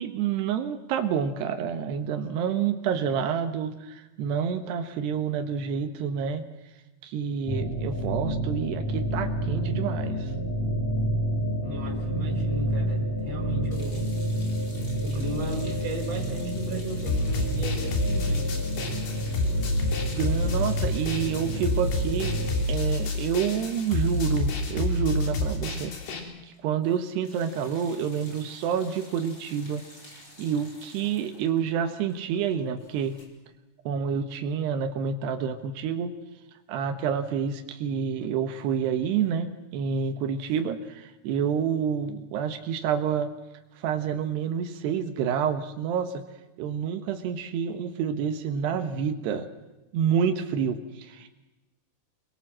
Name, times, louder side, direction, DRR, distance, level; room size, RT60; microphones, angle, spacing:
voice 1, 0.0-6.4 7.0-10.3 20.2-22.4 22.7-26.3 26.6-29.8 30.4-33.2 33.9-36.2 36.7-43.3 43.8-46.2 46.6-49.5 49.9-51.4, right 7 dB, 90° right, 7 dB, 3.4 m, -28 dB
sound 1, 7.5-22.6, right 1 dB, 45° left, 4.2 m, -29 dB
voice 2, 11.6-14.0 15.0-18.5, right 1 dB, 40° right, 1 dB, 5.5 m, -36 dB
sound 2, 13.7-26.1 26.4-26.6 26.8-33.3, left 1 dB, 25° left, 4.9 m, -49 dB
sound 3, 17.1-26.2, left 2 dB, 75° left, 5.1 m, -28 dB
27.0 x 22.0 x 7.5 m, 1.1 s
omnidirectional pair, 4.7 m